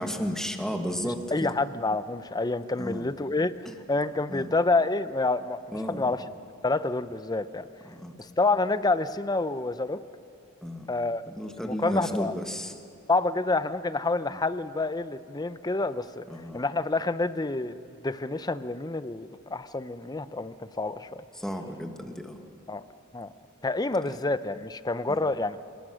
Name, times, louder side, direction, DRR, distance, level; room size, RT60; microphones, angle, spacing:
voice 1, 0.0-1.5 2.8-3.0 4.3-4.5 5.7-6.1 7.8-8.1 10.6-10.9 11.3-12.7 14.3-14.4 16.3-16.6 21.3-22.4 25.1-25.2, equal, 5° left, 4 dB, 1.5 m, -33 dB
voice 2, 1.0-3.5 3.9-5.6 5.9-6.2 6.6-7.7 8.2-10.0 10.9-11.2 11.6-12.3 13.1-16.2 16.5-17.8 18.0-21.2 22.7-22.8 23.1-23.3 23.6-25.6, left 3 dB, 20° left, 13 dB, 0.6 m, -28 dB
25.5 x 19.5 x 6.3 m, 2.8 s
head